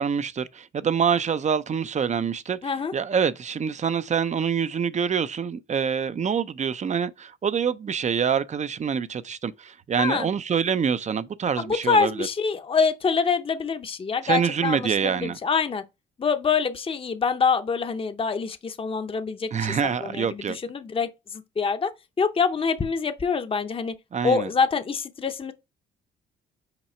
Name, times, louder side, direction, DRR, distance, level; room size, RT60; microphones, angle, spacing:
voice 1, 0.0-12.3 14.2-15.4 19.5-20.6 24.1-24.5, right 7 dB, 35° right, 0.6 m, -26 dB
voice 2, 2.6-2.9 10.0-10.3 11.6-15.8 16.2-23.9 24.2-25.5, left 5 dB, 25° left, 0.7 m, -25 dB
5.9 x 4.7 x 4.3 m
cardioid pair, 90°, 20 cm